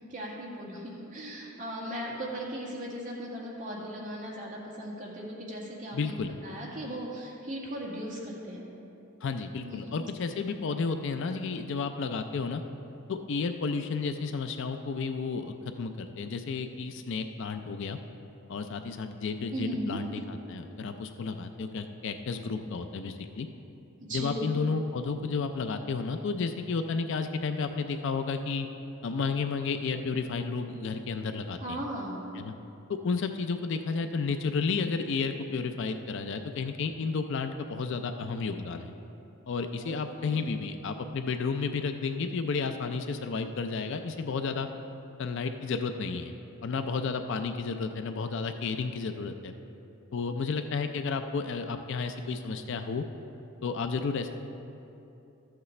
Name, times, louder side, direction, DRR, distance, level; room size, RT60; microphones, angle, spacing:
voice 1, 0.1-6.1 6.4-8.6 9.6-10.0 19.5-20.0 24.0-24.5 31.6-32.2 39.8-40.4, equal, 40° right, -5 dB, 1.9 m, -37 dB
voice 2, 5.9-6.3 9.2-12.6 13.1-18.0 18.5-23.5 24.1-28.7 29.0-31.8 32.3-32.5 32.9-38.9 39.5-44.7 45.2-46.3 46.6-49.5 50.1-53.0 53.6-54.3, left 4 dB, 55° left, 7 dB, 0.4 m, -32 dB
13.5 x 8.1 x 3.2 m, 2.9 s
head